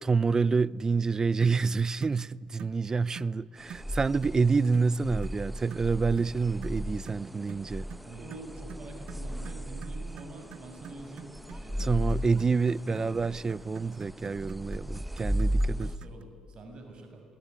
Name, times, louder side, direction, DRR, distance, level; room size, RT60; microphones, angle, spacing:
voice 1, 0.0-7.9 11.8-15.9, right 4 dB, 30° right, 0.6 m, -27 dB
sound 1, 1.4-1.6 2.0-2.2 2.6-2.8 3.2-3.3 3.7-3.9 4.2-4.4 4.7-4.9 5.2-5.4 5.7-5.9 6.2-6.3 6.6-16.2, right 9 dB, 65° right, 0.9 m, -47 dB
sound 2, 3.6-16.0, equal, 5° right, 1.1 m, -35 dB
voice 2, 8.0-12.4 12.9-13.3 15.6-17.2, right 2 dB, 45° right, 6.5 m, -46 dB
27.5 x 21.0 x 9.6 m
supercardioid pair, 70°, 2 cm